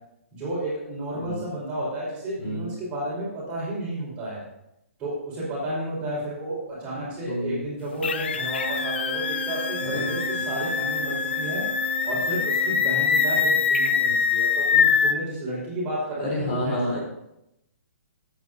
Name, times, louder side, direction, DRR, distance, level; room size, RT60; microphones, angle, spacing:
voice 1, 0.3-4.4 5.0-11.6 12.0-17.0, right 1 dB, 15° right, -7 dB, 4.8 m, -32 dB
voice 2, 7.3-7.7 9.8-10.5 16.2-17.0, left 1 dB, 30° left, -3 dB, 3.6 m, -29 dB
sound 1, 8.0-15.1, left 6 dB, 50° left, 0.8 m, -24 dB
sound 2, 8.4-13.8, right 6 dB, 80° right, 2.5 m, -37 dB
19.5 x 8.8 x 2.8 m, 0.85 s
hypercardioid pair, 165°, 8 cm